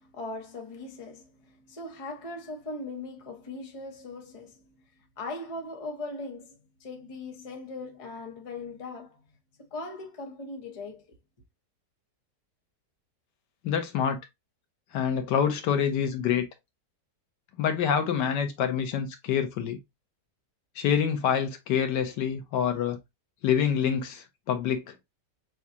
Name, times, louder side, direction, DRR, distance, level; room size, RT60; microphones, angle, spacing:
voice 1, 0.0-4.5 5.2-9.2 9.7-11.2, left 2 dB, 25° left, 0.9 m, -39 dB
voice 2, 13.6-14.2 14.9-16.5 17.6-19.8 20.8-23.0 23.4-24.8, left 8 dB, 85° left, 1.5 m, -26 dB
6.1 x 2.3 x 2.7 m
omnidirectional pair, 1.8 m